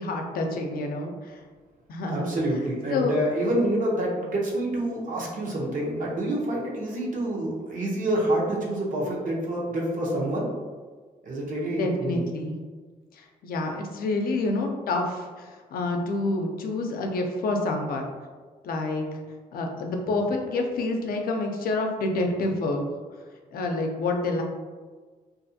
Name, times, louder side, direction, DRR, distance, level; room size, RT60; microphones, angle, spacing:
voice 1, 0.0-1.4 1.9-2.3 2.9-3.1 11.7-12.5 13.2-18.1 18.6-19.0 19.5-22.8 23.5-24.4, left 2 dB, 70° left, 2 dB, 0.5 m, -28 dB
voice 2, 2.1-10.5 11.2-12.2, right 1 dB, 55° right, -3 dB, 0.8 m, -27 dB
2.5 x 2.4 x 2.6 m, 1.4 s
cardioid pair, 85°, 16 cm